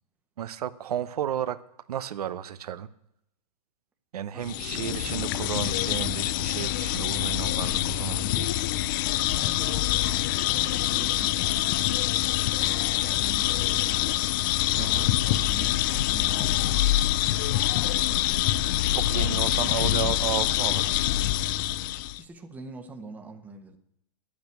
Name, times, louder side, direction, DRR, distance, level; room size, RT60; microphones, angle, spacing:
voice 1, 0.4-1.6 1.9-2.9 4.1-8.5 14.8-15.1 18.9-21.0, right 10 dB, 70° right, 12 dB, 0.9 m, -33 dB
voice 2, 4.3-5.4 9.1-10.0 10.4-12.1 12.5-14.2 14.8-17.0 19.2-19.4 22.2-23.8, right 3 dB, 10° right, 4 dB, 1.2 m, -44 dB
sound 1, 4.4-22.2, left 14 dB, 35° left, 0.4 m, -25 dB
10.0 x 8.6 x 9.2 m, 0.78 s
hypercardioid pair, 150°, 20 cm